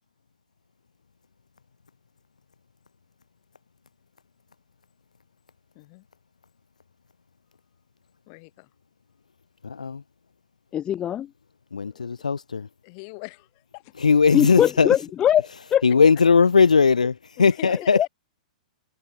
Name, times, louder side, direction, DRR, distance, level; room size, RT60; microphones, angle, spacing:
voice 1, 5.7-6.0 8.3-8.7 11.9-12.1 12.8-13.9 17.4-17.9, left 34 dB, 40° left, 7.1 m, -43 dB
voice 2, 9.6-10.0 11.7-12.7 14.0-14.9 15.8-18.1, left 5 dB, 75° left, 1.0 m, -19 dB
voice 3, 10.7-11.3 14.3-15.8 17.7-18.1, left 10 dB, 20° left, 0.4 m, -22 dB
figure-of-eight pair, 105°, 4 cm